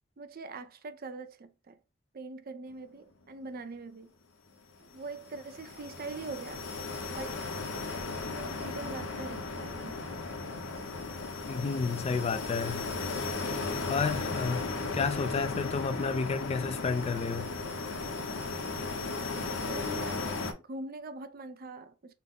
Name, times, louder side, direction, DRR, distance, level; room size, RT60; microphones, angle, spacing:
voice 1, 0.2-1.8 2.1-4.1 4.9-7.4 8.2-10.1 19.6-22.1, right 3 dB, 50° right, 0.5 m, -43 dB
sound 1, 4.9-20.5, left 3 dB, 80° left, 0.8 m, -36 dB
voice 2, 11.5-12.8 13.9-17.5, left 5 dB, 30° left, 0.3 m, -31 dB
5.6 x 2.0 x 3.7 m
head